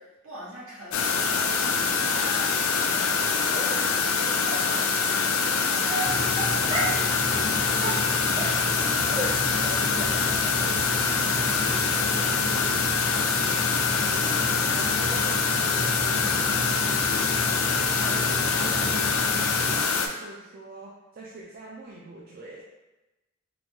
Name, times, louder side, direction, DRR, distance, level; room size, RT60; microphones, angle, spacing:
voice 1, 0.0-8.0, equal, 75° right, -7 dB, 1.3 m, -42 dB
sound 1, 0.9-20.1, left 5 dB, 85° left, 0.4 m, -25 dB
Dog, 3.5-3.9 4.5-4.6 5.4-5.5 5.9-7.0 7.3-7.5 7.8-9.3 9.6-9.7 10.0-10.1 10.4-10.5 10.9-11.0 11.4-11.5 11.7-11.8, right 2 dB, 20° right, 0.7 m, -32 dB
sound 2, 6.0-19.8, equal, 20° left, 0.4 m, -34 dB
voice 2, 9.2-13.5 14.0-17.1 17.7-22.6, right 2 dB, 45° right, -4 dB, 0.4 m, -43 dB
3.8 x 2.3 x 2.9 m, 1.0 s
head